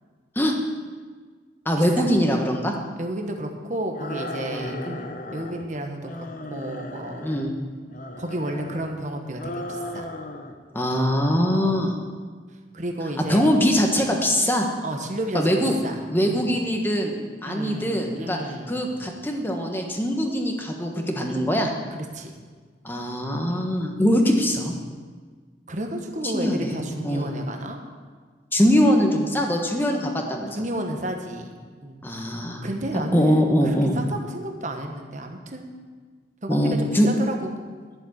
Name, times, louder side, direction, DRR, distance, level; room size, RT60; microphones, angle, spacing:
voice 1, 1.6-2.7 4.5-4.7 7.2-7.5 10.7-11.9 13.3-14.7 15.3-15.8 16.1-18.4 18.7-21.7 22.8-24.7 26.2-27.3 28.5-30.6 32.0-32.7 33.1-34.0 36.5-37.1, equal, 10° left, 2 dB, 1.3 m, -22 dB
voice 2, 3.0-7.3 8.2-10.1 11.5-11.8 12.7-13.4 14.8-15.5 15.8-16.5 17.4-18.7 21.3-21.5 21.9-22.3 23.5-23.7 25.7-27.8 30.6-32.0 32.6-33.5 33.9-35.7 36.4-37.6, right 1 dB, 40° right, 3 dB, 1.3 m, -32 dB
sound 1, 3.9-5.7 6.0-7.5 7.9-9.0 9.4-10.6 10.8-11.6, left 1 dB, 45° left, 0.9 m, -36 dB
11.5 x 7.2 x 7.9 m, 1.5 s
head